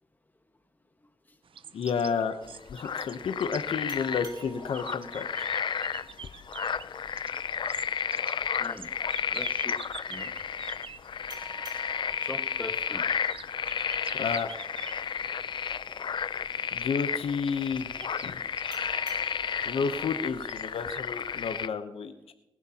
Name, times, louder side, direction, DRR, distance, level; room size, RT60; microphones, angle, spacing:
sound 1, 1.4-21.0, right 7 dB, 70° right, 0.6 m, -48 dB
voice 1, 1.7-2.3 2.7-5.5 14.1-14.6 16.7-18.4 19.6-22.3, left 6 dB, 85° left, 7 dB, 0.8 m, -31 dB
sound 2, 2.4-21.7, left 7 dB, 55° left, 0.4 m, -32 dB
sound 3, 3.9-7.1 11.3-14.5 18.7-21.7, right 2 dB, 45° right, 3.2 m, -51 dB
voice 2, 8.6-8.9 9.3-9.8 10.1-10.3 12.2-13.0 18.7-19.1, left 2 dB, 20° left, 7 dB, 1.5 m, -42 dB
23.0 x 11.0 x 2.9 m, 0.93 s
cardioid pair, 75°, 9 cm